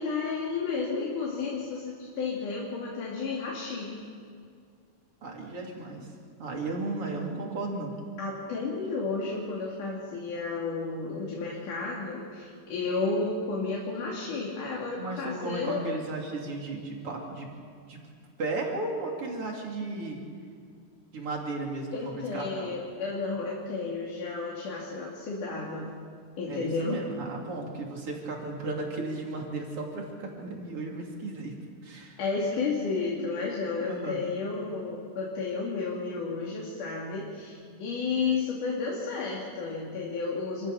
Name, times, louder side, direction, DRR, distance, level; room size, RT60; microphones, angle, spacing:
voice 1, 0.0-4.0 8.2-15.8 21.9-25.9 26.4-27.0 32.2-40.7, left 4 dB, 70° left, -3 dB, 4.1 m, -32 dB
voice 2, 5.2-6.1 6.4-8.0 15.0-17.5 17.9-18.0 18.4-20.2 21.1-22.8 26.5-32.2 33.8-34.3, right 2 dB, 45° right, 0 dB, 3.8 m, -35 dB
27.5 x 15.5 x 6.9 m, 2.2 s
omnidirectional pair, 3.7 m